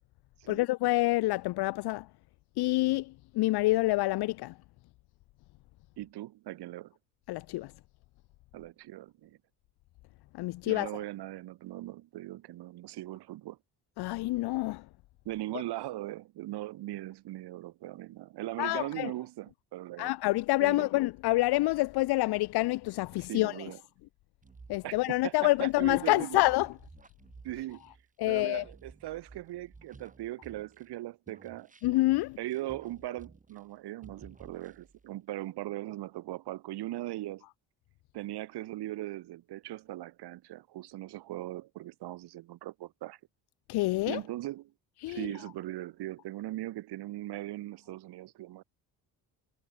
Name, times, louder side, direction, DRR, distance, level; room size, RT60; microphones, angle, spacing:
voice 1, 0.5-2.1 2.6-4.5 7.3-7.7 10.3-10.9 14.0-14.8 18.6-19.1 20.0-23.7 24.7-26.7 28.2-28.6 31.8-32.4 43.7-44.2 45.0-45.3, left 19 dB, 70° left, 0.7 m, -27 dB
voice 2, 6.0-6.9 8.5-9.4 10.7-13.6 15.2-20.1 20.6-20.9 23.3-23.8 24.8-26.4 27.4-27.8 28.3-31.7 32.4-37.4 38.1-43.2 44.1-44.7 45.1-48.6, right 15 dB, 80° right, 2.9 m, -39 dB
sound 1, 24.4-31.0 31.3-33.8 34.0-35.1, right 4 dB, 20° right, 4.8 m, -55 dB
cardioid pair, 140°, 40 cm